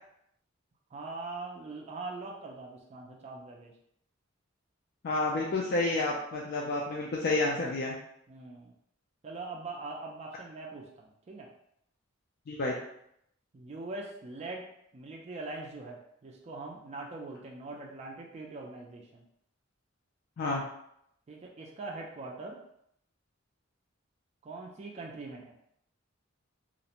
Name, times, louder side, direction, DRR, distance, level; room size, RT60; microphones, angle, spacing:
voice 1, 0.9-3.7 8.3-8.7 9.2-11.5 13.5-14.7 14.9-19.2 21.3-22.6 24.4-25.5, right 3 dB, 35° right, 0 dB, 0.3 m, -42 dB
voice 2, 5.0-8.0 12.5-12.8 20.4-20.6, left 2 dB, 50° left, -3 dB, 0.4 m, -30 dB
2.4 x 2.0 x 2.8 m, 0.74 s
head